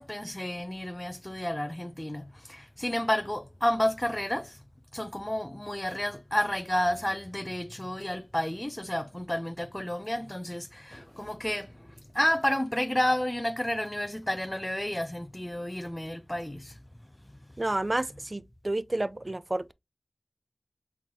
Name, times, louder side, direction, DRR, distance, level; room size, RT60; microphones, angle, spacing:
voice 1, 0.0-4.6 4.9-16.8, left 1 dB, 15° left, 0.5 m, -31 dB
voice 2, 17.6-19.7, right 2 dB, 40° right, 0.3 m, -30 dB
4.6 x 3.8 x 2.8 m
wide cardioid pair, 50°, 0 cm